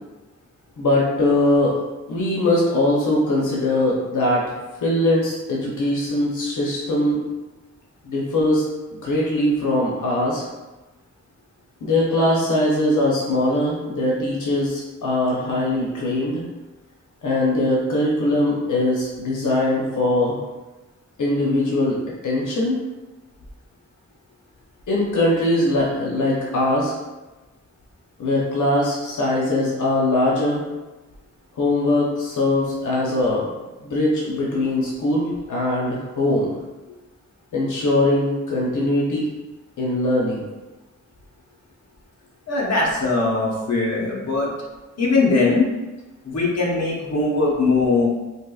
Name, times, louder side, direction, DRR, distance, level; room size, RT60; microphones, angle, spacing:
voice 1, 0.8-1.8 2.1-4.4 4.8-7.2 8.0-8.6 8.9-10.4 11.8-16.4 17.2-20.4 21.2-22.0 22.2-22.8 24.9-26.9 28.2-30.6 31.6-33.5 33.8-36.5 37.5-39.3 39.8-40.4, left 1 dB, 85° left, -4 dB, 0.8 m, -21 dB
voice 2, 42.5-44.5 45.0-45.7 46.2-48.1, left 3 dB, 60° left, -4 dB, 1.0 m, -20 dB
4.5 x 2.9 x 2.3 m, 1.1 s
wide cardioid pair, 100°, 30 cm